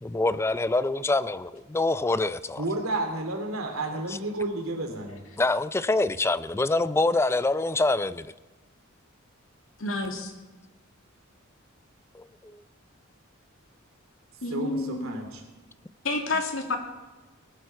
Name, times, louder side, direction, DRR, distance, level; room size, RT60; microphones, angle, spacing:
voice 1, 0.0-2.6 5.4-8.3, left 2 dB, 10° left, 15 dB, 0.3 m, -25 dB
voice 2, 2.6-5.2 14.5-15.4, right 2 dB, 80° right, 3 dB, 2.8 m, -31 dB
voice 3, 9.8-10.3 14.4-15.2 16.0-16.8, left 2 dB, 75° left, 3 dB, 2.2 m, -29 dB
19.0 x 11.0 x 4.7 m, 1.2 s
head